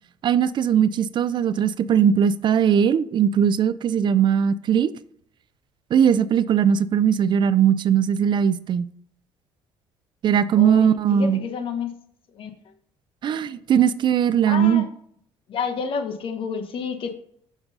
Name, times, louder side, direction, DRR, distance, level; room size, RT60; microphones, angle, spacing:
voice 1, 0.2-4.9 5.9-8.9 10.2-11.4 13.2-14.8, right 8 dB, 45° right, 0.4 m, -19 dB
voice 2, 10.5-11.9 12.3-12.7 14.5-14.9 15.5-17.1, left 6 dB, 55° left, 1.0 m, -30 dB
6.0 x 3.9 x 5.2 m
cardioid pair, 95°, 11 cm